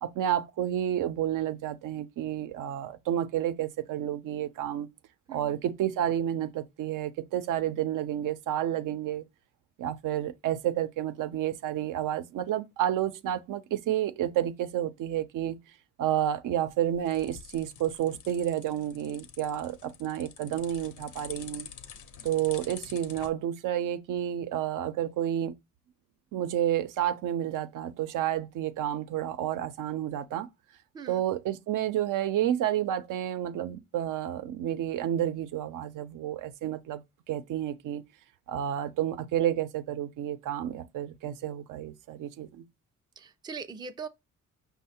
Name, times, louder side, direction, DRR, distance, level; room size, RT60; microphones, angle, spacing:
voice 1, 0.0-4.9 5.3-9.2 9.8-15.6 16.0-21.7 22.2-25.5 26.3-30.5 31.1-38.0 38.5-42.7, right 11 dB, 75° right, 0.5 m, -30 dB
sound 1, 16.5-23.3, left 8 dB, 70° left, 0.7 m, -47 dB
voice 2, 43.2-44.1, right 5 dB, 15° right, 0.3 m, -41 dB
5.4 x 2.0 x 4.1 m
cardioid pair, 120°, 31 cm